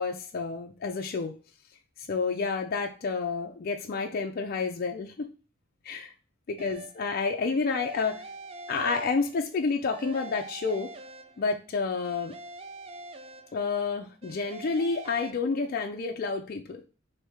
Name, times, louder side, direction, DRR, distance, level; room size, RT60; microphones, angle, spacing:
voice 1, 0.0-1.3 2.0-5.3 5.8-6.1 6.5-8.2 8.7-10.9 11.4-12.3 13.5-16.9, left 4 dB, 45° left, 4 dB, 0.4 m, -29 dB
sound 1, 6.6-7.1 7.7-9.5 9.8-11.6 12.0-13.8 14.2-15.3, right 3 dB, 30° right, 0.4 m, -44 dB
3.5 x 2.7 x 4.3 m, 0.35 s
head